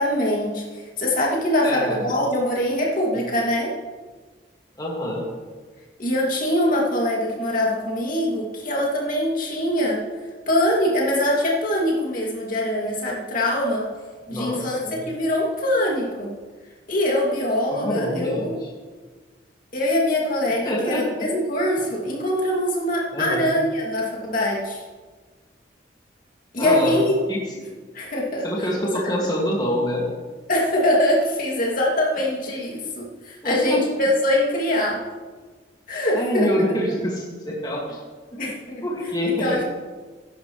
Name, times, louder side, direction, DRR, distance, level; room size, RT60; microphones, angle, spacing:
voice 1, 0.0-3.7 6.0-10.0 10.5-13.9 14.3-16.3 16.9-18.6 19.7-24.8 26.5-27.1 27.9-28.5 30.5-35.0 35.9-36.7 38.4-38.8 39.2-39.6, left 1 dB, 45° left, -3 dB, 2.5 m, -23 dB
voice 2, 1.6-2.0 4.8-5.2 14.3-15.0 17.7-18.7 20.6-21.1 23.1-23.4 26.6-27.0 27.3-27.4 28.4-30.0 33.4-33.8 35.9-38.0 38.3-38.4 38.8-39.6, equal, 20° left, -3 dB, 2.1 m, -26 dB
15.0 x 11.0 x 3.2 m, 1.4 s
head